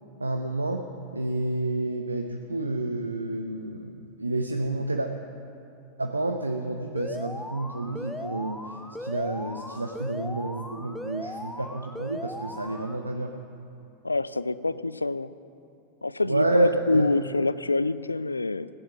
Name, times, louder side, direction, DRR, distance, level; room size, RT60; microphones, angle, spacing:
voice 1, 0.2-0.8 1.1-5.1 6.0-8.6 9.0-13.3 16.3-17.1, right 2 dB, 80° right, 4 dB, 0.7 m, -29 dB
Alarm, 7.0-13.0, left 1 dB, 5° left, 0.7 m, -38 dB
voice 2, 14.0-15.3 16.0-18.7, left 3 dB, 80° left, 16 dB, 0.4 m, -26 dB
16.5 x 10.0 x 6.0 m, 2.8 s
figure-of-eight pair, 90°, 0 cm